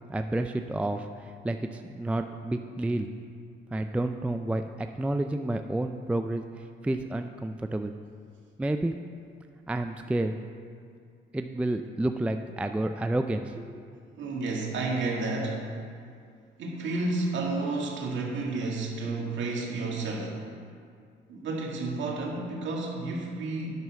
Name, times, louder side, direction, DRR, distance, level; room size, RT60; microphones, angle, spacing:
voice 1, 0.1-3.1 3.7-7.9 8.6-8.9 9.7-10.3 11.3-13.9, right 1 dB, 5° right, 7 dB, 0.3 m, -30 dB
voice 2, 14.2-15.6 16.6-20.4 21.3-23.7, right 3 dB, 70° right, -2 dB, 2.0 m, -31 dB
9.5 x 6.2 x 5.9 m, 2.3 s
cardioid pair, 90°, 20 cm